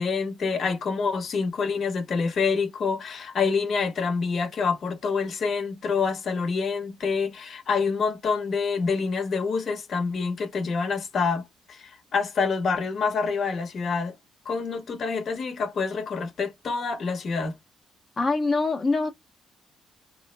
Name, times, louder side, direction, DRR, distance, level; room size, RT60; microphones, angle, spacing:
voice 1, 0.0-14.2 14.4-17.5, left 5 dB, 55° left, 1.0 m, -27 dB
voice 2, 18.2-19.1, left 3 dB, 35° left, 0.8 m, -24 dB
3.1 x 2.1 x 3.2 m
cardioid pair, 90°, 0 cm